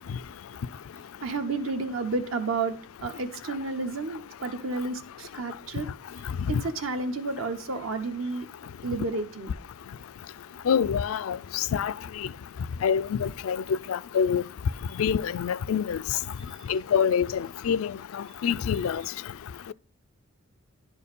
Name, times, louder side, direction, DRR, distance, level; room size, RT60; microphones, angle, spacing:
voice 1, 1.2-2.7 3.0-5.9 6.2-8.5 8.8-9.5, right 3 dB, 70° right, 0.9 m, -31 dB
voice 2, 10.7-11.9 12.8-13.6 13.9-14.4 15.0-16.0 16.7-17.9 18.4-19.0, left 7 dB, 75° left, 0.3 m, -26 dB
10.5 x 4.6 x 5.3 m
head